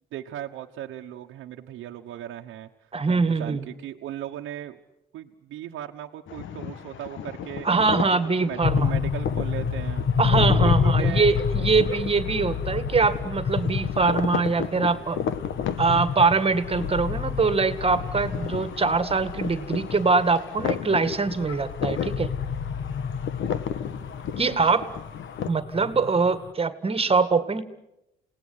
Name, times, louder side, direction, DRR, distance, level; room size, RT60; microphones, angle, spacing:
voice 1, 0.1-2.7 3.1-4.8 5.1-7.7 8.4-11.3, right 12 dB, 85° right, 2 dB, 1.2 m, -37 dB
voice 2, 2.9-3.7 7.6-8.9 10.2-15.2 15.8-22.3 24.4-24.9 25.5-27.6, right 4 dB, 30° right, 12 dB, 1.9 m, -23 dB
sound 1, 6.3-25.5, left 8 dB, 75° left, 1.5 m, -34 dB
sound 2, 8.6-26.5, left 6 dB, 55° left, 1.6 m, -29 dB
28.5 x 18.5 x 9.7 m, 0.90 s
cardioid pair, 90°, 20 cm